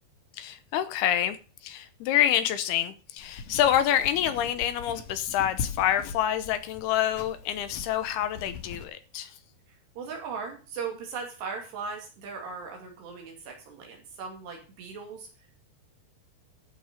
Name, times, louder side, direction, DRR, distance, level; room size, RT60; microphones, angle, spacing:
voice 1, 0.3-1.4 1.6-9.4, left 11 dB, 75° left, 2.7 m, -27 dB
sound 1, 3.2-8.8, left 5 dB, 60° left, 2.7 m, -41 dB
voice 2, 9.7-15.3, right 5 dB, 75° right, 4.5 m, -38 dB
13.5 x 6.1 x 6.6 m
omnidirectional pair, 4.9 m